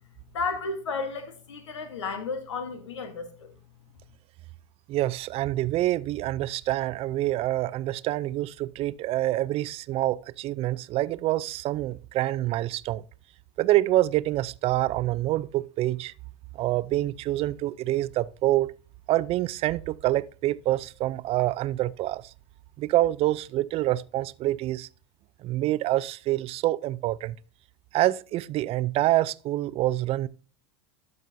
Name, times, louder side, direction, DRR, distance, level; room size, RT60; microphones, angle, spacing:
voice 1, 0.3-3.5, left 4 dB, 90° left, 1.2 m, -33 dB
voice 2, 4.9-13.0 13.6-16.1 16.5-18.7 19.1-22.3 22.8-24.9 25.4-27.4 27.9-30.3, right 15 dB, 45° right, 0.4 m, -26 dB
12.5 x 5.4 x 2.6 m
hypercardioid pair, 95°, 15 cm